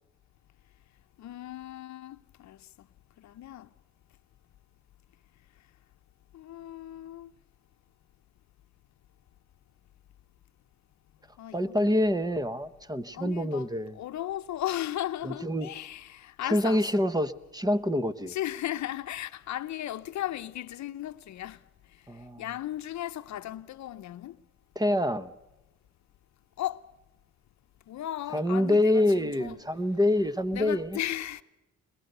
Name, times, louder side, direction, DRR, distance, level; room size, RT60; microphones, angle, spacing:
voice 1, 1.2-2.9 3.2-3.7 6.3-7.3 11.4-12.0 13.1-13.7 13.9-16.9 18.2-21.6 21.9-22.0 22.4-24.4 26.6-26.9 27.9-29.6 30.5-31.4, left 13 dB, 65° left, 0.8 m, -36 dB
voice 2, 11.5-14.0 15.2-15.7 16.5-18.3 22.1-22.4 24.7-25.3 28.3-31.0, left 1 dB, 15° right, 1.0 m, -26 dB
22.5 x 21.0 x 6.7 m
cardioid pair, 90°, 30 cm